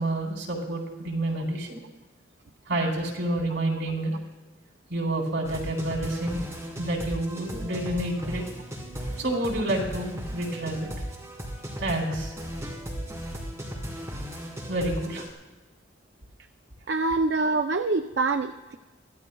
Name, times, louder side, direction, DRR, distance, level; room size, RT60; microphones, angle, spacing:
voice 1, 0.0-1.8 2.7-4.2 4.9-6.4 6.8-8.5 9.2-10.9 11.7-12.3 14.7-15.3, right 1 dB, 75° right, -2 dB, 4.0 m, -29 dB
sound 1, 5.4-15.3, equal, 15° right, 3.4 m, -36 dB
voice 2, 16.9-18.8, right 3 dB, 60° right, 6 dB, 0.5 m, -25 dB
24.0 x 15.0 x 2.3 m, 1.2 s
head